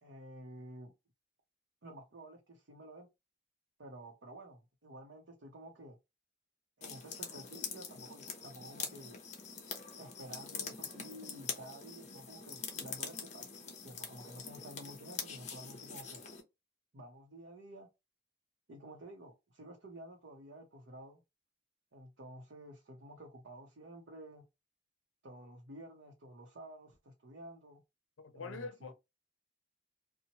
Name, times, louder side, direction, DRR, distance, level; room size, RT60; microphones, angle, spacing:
voice 1, 0.0-0.9 1.8-3.1 3.8-6.0 6.8-9.2 10.0-13.6 13.8-16.2 16.9-17.9 18.7-21.2 21.9-24.4 25.2-27.8 28.3-28.9, right 1 dB, 70° right, 0.7 m, -51 dB
sound 1, 6.8-16.4, left 6 dB, 35° left, 0.6 m, -44 dB
voice 2, 28.2-28.9, left 4 dB, 85° left, 0.5 m, -44 dB
2.9 x 2.1 x 2.8 m
head